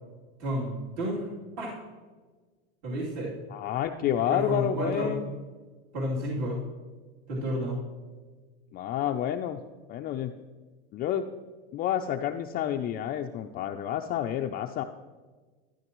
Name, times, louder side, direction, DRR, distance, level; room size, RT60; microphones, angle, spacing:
voice 1, 0.4-1.3 1.6-1.7 2.8-3.3 4.3-5.2 5.9-6.6 7.3-7.8, right 1 dB, 50° right, -5 dB, 3.0 m, -31 dB
voice 2, 3.5-5.3 8.7-9.6 9.9-10.3 10.9-11.3 11.7-14.8, left 10 dB, 30° left, 4 dB, 0.4 m, -29 dB
12.5 x 11.5 x 3.0 m, 1.4 s
supercardioid pair, 130°, 31 cm